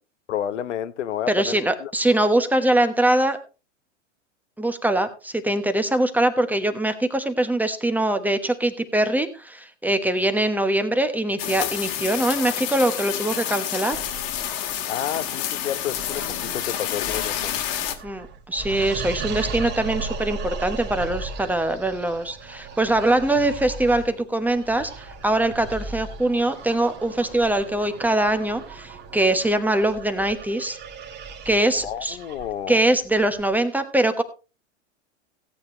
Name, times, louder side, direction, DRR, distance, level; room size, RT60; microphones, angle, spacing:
voice 1, 0.3-1.9 14.9-17.6 31.8-32.8, left 10 dB, 70° left, 1.0 m, -30 dB
voice 2, 1.3-3.4 4.6-14.0 18.0-30.8 31.4-32.2 32.7-34.2, right 1 dB, 5° right, 1.1 m, -22 dB
sound 1, 11.4-17.9, left 11 dB, 45° left, 2.0 m, -29 dB
sound 2, 13.9-33.6, right 4 dB, 30° right, 1.9 m, -37 dB
17.0 x 8.7 x 3.1 m
hypercardioid pair, 105°, 37 cm